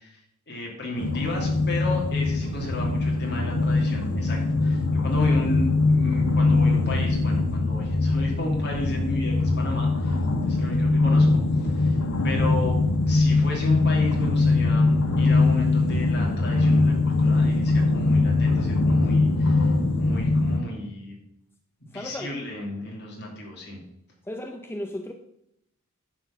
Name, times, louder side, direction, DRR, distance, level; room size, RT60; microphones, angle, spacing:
voice 1, 0.0-12.0 12.2-12.8 13.1-21.2 21.8-23.8, left 2 dB, 50° left, -1 dB, 2.9 m, -33 dB
sound 1, 1.0-20.6, left 3 dB, 70° left, 1.1 m, -22 dB
voice 2, 21.9-22.3 24.3-25.1, left 1 dB, 10° left, 4 dB, 0.6 m, -35 dB
10.0 x 4.3 x 7.3 m, 0.79 s
head